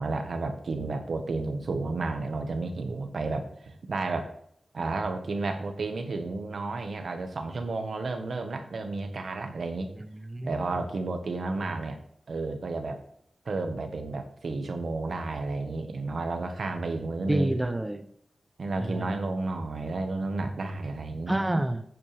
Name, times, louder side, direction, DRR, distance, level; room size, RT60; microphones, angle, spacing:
voice 1, 0.0-4.3 4.7-9.9 10.4-12.0 12.3-13.0 13.4-17.5 18.6-21.4, right 3 dB, 75° right, 5 dB, 1.4 m, -32 dB
voice 2, 10.0-10.6 17.3-18.1 18.8-19.2 21.3-21.8, right 1 dB, 20° right, 8 dB, 0.7 m, -28 dB
11.0 x 8.7 x 3.5 m, 0.67 s
cardioid pair, 65°, 0 cm